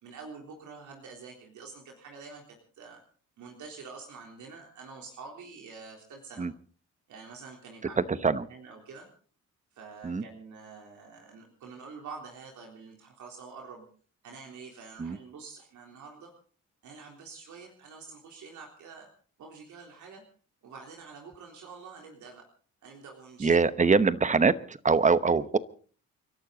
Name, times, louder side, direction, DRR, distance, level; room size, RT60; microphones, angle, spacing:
voice 1, 0.0-3.0 3.4-6.5 7.1-9.1 9.7-13.9 14.2-16.3 16.8-19.1 19.4-20.2 20.6-22.5 22.8-23.9, right 4 dB, 75° right, 1 dB, 3.7 m, -47 dB
voice 2, 8.0-8.5 10.0-10.2 15.0-15.2 23.4-25.6, right 4 dB, 25° right, 15 dB, 1.0 m, -24 dB
29.5 x 12.0 x 4.0 m, 0.43 s
cardioid pair, 90°, 30 cm